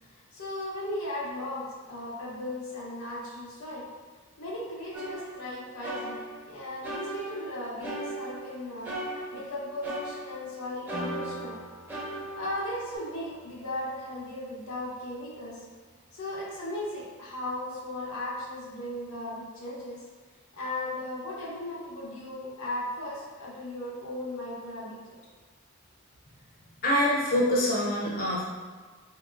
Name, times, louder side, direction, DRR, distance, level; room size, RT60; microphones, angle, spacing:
voice 1, 0.0-3.9 4.4-8.9 9.3-11.5 12.3-15.6 16.1-20.0 20.5-25.1, left 1 dB, 85° left, -6 dB, 0.9 m, -37 dB
sound 1, 4.9-6.5 6.8-8.5 8.8-10.5 10.9-13.0, right 1 dB, 10° right, 0.5 m, -37 dB
Piano, 10.9-18.3, right 1 dB, 65° right, 1.0 m, -49 dB
voice 2, 26.8-28.4, left 1 dB, 45° left, -7 dB, 0.6 m, -25 dB
3.8 x 2.8 x 2.4 m, 1.4 s
head